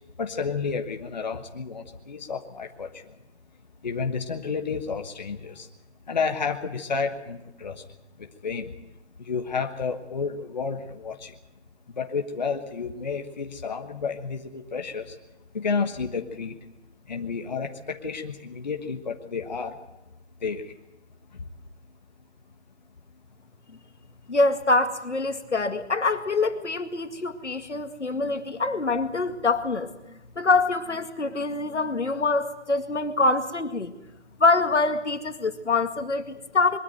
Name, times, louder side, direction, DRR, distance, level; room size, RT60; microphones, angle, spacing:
voice 1, 0.2-2.9 3.8-5.7 6.1-7.8 8.2-8.7 9.2-11.3 11.9-15.1 15.5-16.6 17.1-19.8 20.4-20.7, left 5 dB, 40° left, 5 dB, 1.4 m, -31 dB
voice 2, 24.3-29.9 30.4-33.9 34.4-36.8, left 3 dB, 80° left, 7 dB, 2.2 m, -25 dB
22.5 x 13.0 x 9.2 m, 0.96 s
figure-of-eight pair, 170°, 35 cm